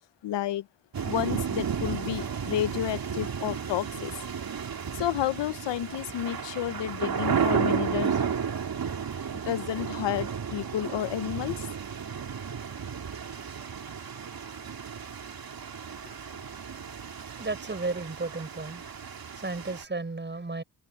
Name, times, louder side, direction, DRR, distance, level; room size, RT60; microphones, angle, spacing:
voice 1, 0.2-0.7 1.0-4.1 4.9-8.2 9.3-11.7, left 12 dB, 90° left, 0.9 m, -31 dB
sound 1, 0.9-19.8, right 7 dB, 55° right, 3.1 m, -33 dB
voice 2, 17.4-18.8 19.3-20.6, right 3 dB, 25° right, 5.7 m, -33 dB
cardioid pair, 75°, 42 cm